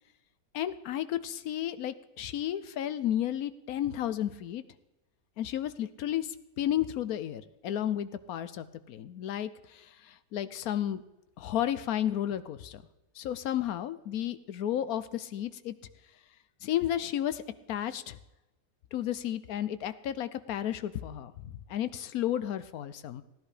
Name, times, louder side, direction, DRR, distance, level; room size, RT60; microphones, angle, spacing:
voice 1, 0.5-4.6 5.4-11.0 11.4-12.8 13.2-15.7 16.6-17.4 17.7-18.2 18.9-23.2, left 11 dB, 65° left, 13 dB, 1.1 m, -33 dB
16.0 x 11.0 x 5.0 m, 0.99 s
omnidirectional pair, 1.9 m